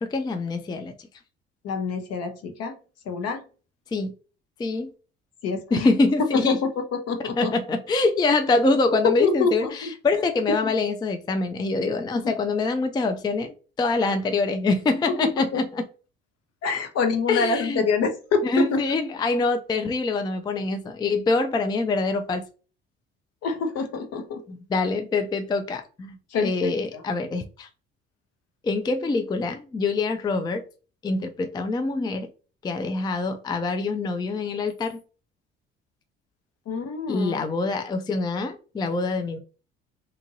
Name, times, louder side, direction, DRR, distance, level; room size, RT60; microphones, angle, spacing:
voice 1, 0.0-1.1 3.9-4.1 4.6-4.9 5.7-6.6 7.4-15.8 17.3-17.8 18.4-22.4 24.5-27.7 28.6-30.6 31.0-32.3 32.6-35.0 37.1-39.4, left 3 dB, 15° left, 0.4 m, -25 dB
voice 2, 1.6-2.8 3.1-3.4 5.4-5.9 6.5-7.5 9.0-9.9 10.6-10.7 12.1-12.4 15.4-15.6 16.6-18.8 23.4-24.4 26.3-27.0 36.7-37.4, left 4 dB, 55° left, 0.8 m, -26 dB
2.8 x 2.5 x 2.7 m
hypercardioid pair, 55°, 30 cm